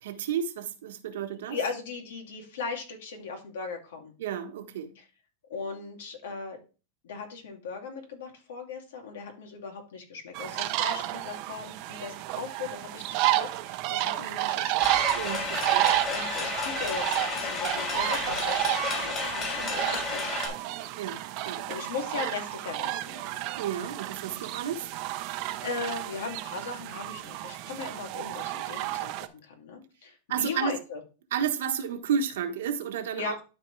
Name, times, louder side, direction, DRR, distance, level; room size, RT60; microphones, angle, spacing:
voice 1, 0.0-1.6 4.2-4.9 15.1-15.9 21.0-21.2 21.4-21.6 23.6-24.9 30.3-30.7 31.3-33.4, right 8 dB, 80° right, 1.3 m, -31 dB
voice 2, 1.5-4.1 5.0-5.1 5.5-6.6 7.0-14.9 15.8-20.7 21.5-23.3 25.6-31.0 33.2-33.4, left 4 dB, 85° left, 2.5 m, -38 dB
sound 1, 10.3-29.3, right 16 dB, 50° right, 0.7 m, -31 dB
sound 2, 14.8-20.5, left 4 dB, 30° left, 3.3 m, -32 dB
12.0 x 4.4 x 3.3 m
supercardioid pair, 145°, 0 cm